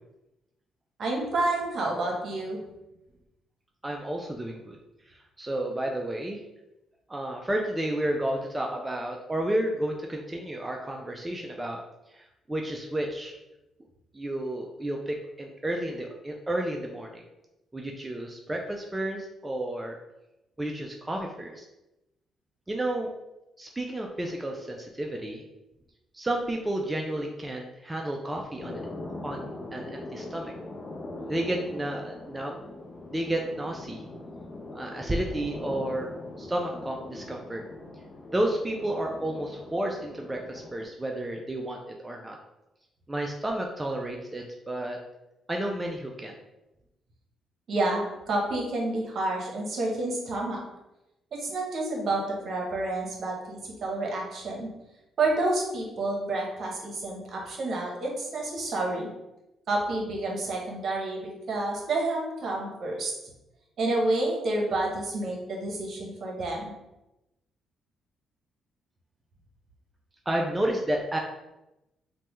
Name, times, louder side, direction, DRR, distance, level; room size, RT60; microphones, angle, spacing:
voice 1, 1.0-2.6 47.7-50.6 51.3-54.7 55.2-59.1 59.7-63.1 63.8-66.7, right 2 dB, 55° right, -1 dB, 0.9 m, -29 dB
voice 2, 3.8-4.8 5.1-6.4 7.1-11.8 12.1-13.4 14.1-17.2 17.7-20.0 20.6-21.6 22.7-23.1 23.6-25.4 26.1-28.9 29.2-30.5 31.3-32.5 33.1-34.0 34.7-36.1 36.4-37.6 38.3-42.4 43.1-45.0 45.5-46.3 70.3-71.2, right 1 dB, 15° right, 1 dB, 0.3 m, -31 dB
sound 1, 28.6-40.9, left 2 dB, 45° left, 0.5 m, -41 dB
3.2 x 2.1 x 3.0 m, 0.95 s
cardioid pair, 90°, 0 cm